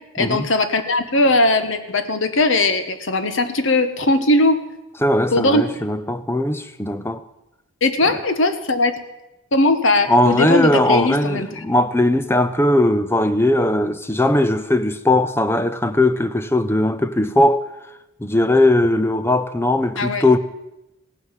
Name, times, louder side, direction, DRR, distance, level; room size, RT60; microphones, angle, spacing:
voice 1, 0.1-4.6 5.3-5.8 7.8-8.9 9.5-11.5 20.0-20.2, left 2 dB, 65° left, 1.3 m, -19 dB
voice 2, 5.0-7.2 10.1-17.6 18.2-20.4, left 1 dB, 10° left, 0.6 m, -18 dB
16.5 x 9.6 x 7.5 m
head